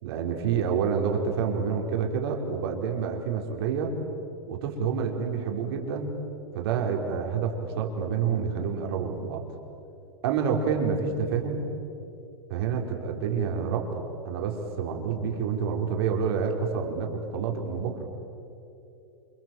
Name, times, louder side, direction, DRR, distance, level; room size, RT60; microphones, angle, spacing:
voice 1, 0.0-4.0 4.5-6.1 6.5-9.4 10.2-11.7 12.5-18.1, right 6 dB, 45° right, 2 dB, 4.5 m, -28 dB
28.5 x 27.0 x 7.8 m, 2.8 s
supercardioid pair, 170°, 17 cm